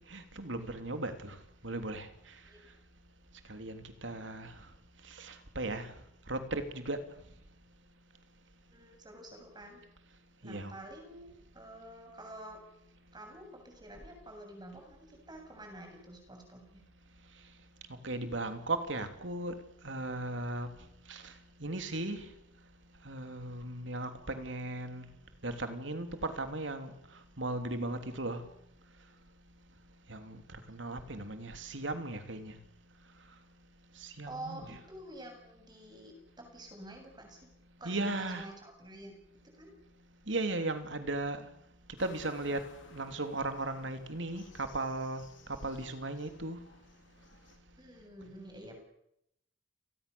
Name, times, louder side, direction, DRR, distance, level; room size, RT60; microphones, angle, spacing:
voice 1, 0.1-1.4 1.6-2.1 3.5-4.5 5.1-5.9 6.3-7.0 10.4-10.7 18.0-19.6 19.8-20.7 21.1-21.3 21.6-22.3 23.0-25.1 25.4-26.9 27.4-28.4 30.1-32.6 34.0-34.8 37.8-38.5 40.3-41.4 42.0-42.6 42.9-45.2 45.6-46.6, right 2 dB, 80° right, 8 dB, 3.2 m, -36 dB
voice 2, 8.7-9.8 10.4-12.6 13.1-16.8 34.3-37.5 37.8-39.1 39.5-39.7 47.8-48.8, right 1 dB, 25° right, 3 dB, 7.6 m, -48 dB
sound 1, 42.0-47.6, left 3 dB, 90° left, 4.1 m, -58 dB
30.0 x 19.5 x 7.1 m, 0.78 s
head